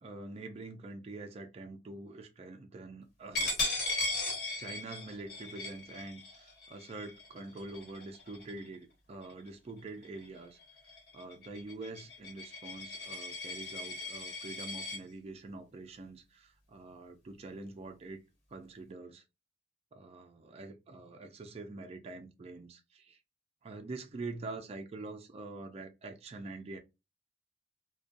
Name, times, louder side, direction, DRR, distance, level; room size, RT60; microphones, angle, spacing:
voice 1, 0.0-3.5 4.6-10.6 11.1-18.2 18.5-19.2 19.9-23.2 23.6-26.8, right 3 dB, 35° right, 0.4 m, -45 dB
Coin (dropping), 3.3-8.7 9.2-9.5 9.9-15.0, left 2 dB, 55° left, 1.3 m, -38 dB
2.5 x 2.2 x 2.4 m
head